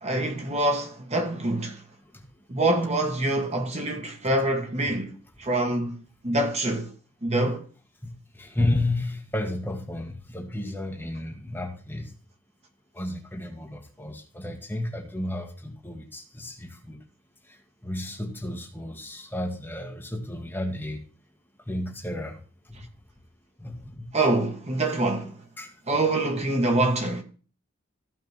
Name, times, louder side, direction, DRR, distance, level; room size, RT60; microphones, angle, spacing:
voice 1, 0.0-1.8 2.5-6.0 6.2-6.9 7.2-7.6 24.1-25.3 25.9-27.2, right 2 dB, 35° right, 1.4 m, -25 dB
voice 2, 8.4-12.1 12.9-17.0 17.8-21.0 21.7-22.4 22.7-22.9 23.6-24.1 25.6-25.7, left 1 dB, 10° left, 1.6 m, -32 dB
15.0 x 5.2 x 3.4 m
head